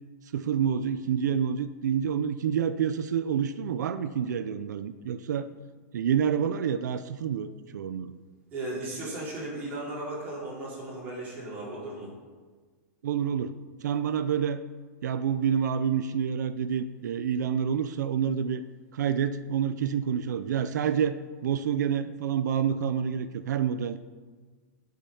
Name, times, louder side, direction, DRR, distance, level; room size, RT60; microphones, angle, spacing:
voice 1, 0.3-5.5 5.9-8.1 13.0-13.5 13.8-14.6 15.0-18.6 18.9-21.1 21.4-24.0, right 8 dB, 85° right, 11 dB, 0.8 m, -28 dB
voice 2, 8.5-12.1, right 2 dB, 15° right, -8 dB, 4.6 m, -36 dB
18.5 x 6.1 x 7.1 m, 1.4 s
supercardioid pair, 175°, 9 cm